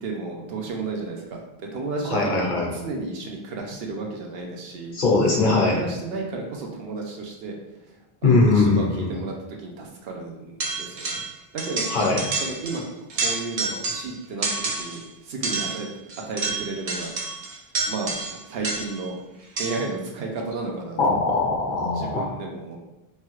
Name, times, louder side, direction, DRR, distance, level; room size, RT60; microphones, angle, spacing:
voice 1, 0.0-5.0 5.3-8.0 8.2-11.2 11.5-11.9 12.4-12.9 13.1-15.9 16.3-17.4 17.9-18.1 18.5-19.2 19.6-21.2 21.9-22.8, right 3 dB, 70° right, 0 dB, 0.8 m, -33 dB
voice 2, 2.1-2.7 4.9-5.8 8.2-9.1 11.9-12.2 21.0-22.3, left 3 dB, 55° left, -3 dB, 0.7 m, -20 dB
sound 1, 10.6-11.3 11.6-12.8 13.1-14.1 14.4-15.0 15.4-19.1 19.6-19.9, right 3 dB, 50° right, 0.4 m, -29 dB
3.1 x 2.3 x 2.9 m, 0.97 s
omnidirectional pair, 1.1 m